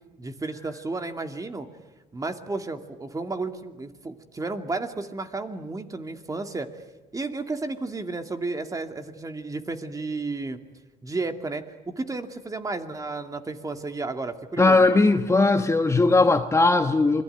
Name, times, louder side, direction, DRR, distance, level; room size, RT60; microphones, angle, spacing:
voice 1, 0.2-1.7 2.1-6.7 7.1-10.6 11.0-15.2, right 3 dB, 20° right, 2.5 m, -32 dB
voice 2, 14.6-17.2, left 3 dB, 15° left, 1.2 m, -19 dB
28.0 x 22.5 x 9.3 m
cardioid pair, 110°, 17 cm